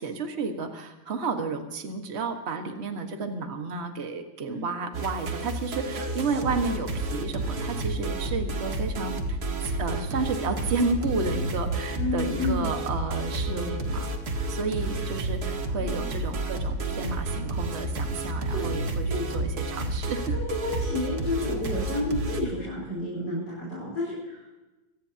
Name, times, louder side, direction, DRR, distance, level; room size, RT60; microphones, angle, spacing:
voice 1, 0.0-9.4 9.6-14.1 14.5-20.4, right 4 dB, 35° right, 5 dB, 1.7 m, -32 dB
sound 1, 4.9-22.4, right 2 dB, 50° right, 2.2 m, -30 dB
voice 2, 12.0-12.7 15.8-16.0 18.5-18.7 19.1-19.2 20.3-24.6, left 2 dB, 60° left, -6 dB, 6.1 m, -31 dB
25.5 x 18.0 x 2.9 m, 1.1 s
omnidirectional pair, 2.1 m